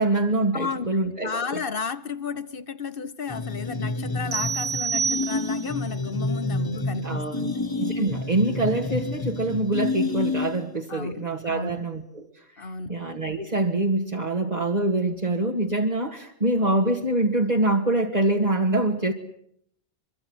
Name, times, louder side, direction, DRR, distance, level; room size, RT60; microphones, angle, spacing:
voice 1, 0.0-1.6 7.0-7.4 7.8-12.3 12.6-19.1, right 2 dB, 40° right, 2.1 m, -25 dB
voice 2, 0.5-7.6 10.9-11.7 12.6-12.9, left 5 dB, 55° left, 1.4 m, -33 dB
sound 1, 3.3-10.8, left 2 dB, 20° left, 1.4 m, -29 dB
sound 2, 4.3-5.8, right 6 dB, 65° right, 1.6 m, -28 dB
24.5 x 24.0 x 8.0 m
omnidirectional pair, 1.1 m